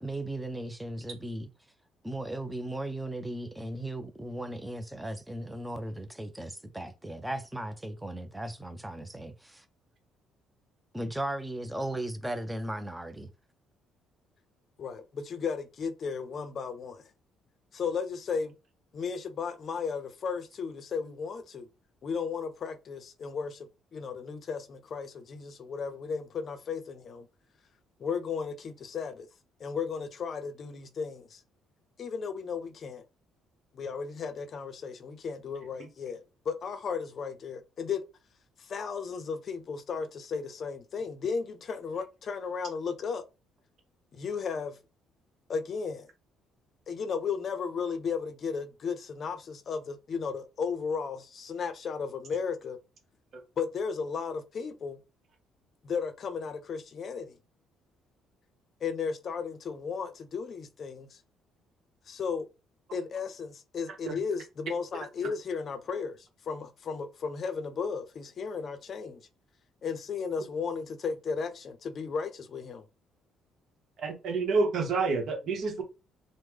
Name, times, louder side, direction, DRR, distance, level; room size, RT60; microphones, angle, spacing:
voice 1, 0.0-1.5 2.0-9.6 10.9-13.3, right 1 dB, 5° right, 0.5 m, -36 dB
voice 2, 14.8-17.0 17.7-18.5 18.9-21.7 22.0-27.3 28.0-29.3 29.6-31.4 32.0-33.0 33.7-38.0 38.6-43.2 44.1-44.8 45.5-46.1 46.9-52.8 53.6-55.0 55.8-57.4 58.8-61.2 62.1-62.5 62.9-69.2 69.8-72.9, left 5 dB, 50° left, 0.5 m, -35 dB
voice 3, 74.0-75.8, right 4 dB, 60° right, 1.0 m, -28 dB
3.1 x 2.1 x 3.5 m
cardioid pair, 105°, 0 cm